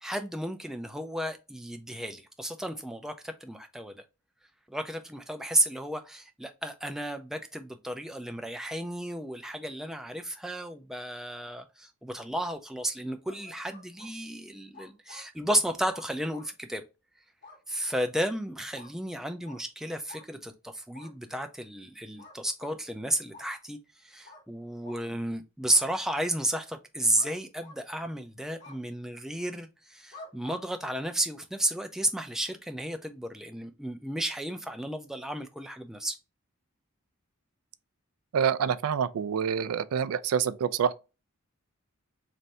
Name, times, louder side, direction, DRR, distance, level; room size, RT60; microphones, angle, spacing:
voice 1, 0.0-4.0 4.7-16.8 17.7-36.2, right 1 dB, ahead, 0.3 m, -33 dB
sound 1, 13.3-14.1 14.7-15.3 15.9-16.5 17.4-17.6 17.9-18.1 18.7-18.9 19.4-19.6 20.1-20.3 20.9-21.1 22.2-22.8 23.3-23.5 24.2-24.4 24.8-25.0 25.6-25.8 27.2-27.3 27.6-28.1 28.6-28.8 30.1-30.6, left 3 dB, 55° left, 1.1 m, -49 dB
voice 2, 38.3-40.9, right 7 dB, 75° right, 0.3 m, -27 dB
3.2 x 2.6 x 4.1 m
head